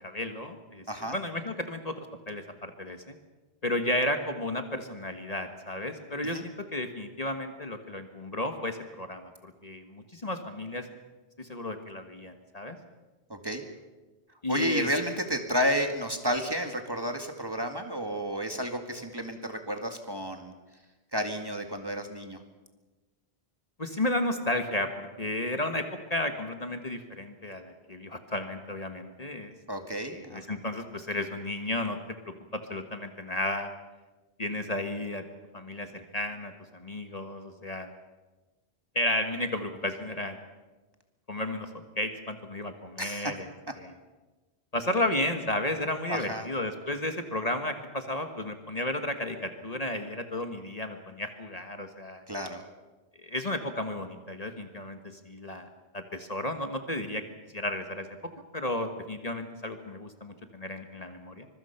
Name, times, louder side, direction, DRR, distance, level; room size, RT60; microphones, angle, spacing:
voice 1, 0.0-0.8 1.1-3.2 3.6-10.9 11.4-12.8 14.4-14.9 23.8-29.5 29.9-32.0 32.5-33.7 34.4-35.2 35.5-37.9 38.9-40.4 41.3-41.7 42.0-43.5 43.8-43.9 44.7-52.2 53.2-55.0 55.2-55.7 55.9-57.2 57.5-58.1 58.5-61.5, left 1 dB, 35° left, 6 dB, 1.6 m, -33 dB
voice 2, 13.3-13.6 14.5-20.5 21.1-22.4 29.7-30.6 43.0-43.3 46.1-46.5 52.3-52.6, equal, 20° right, 5 dB, 2.0 m, -31 dB
25.0 x 23.0 x 5.8 m, 1.2 s
omnidirectional pair, 1.1 m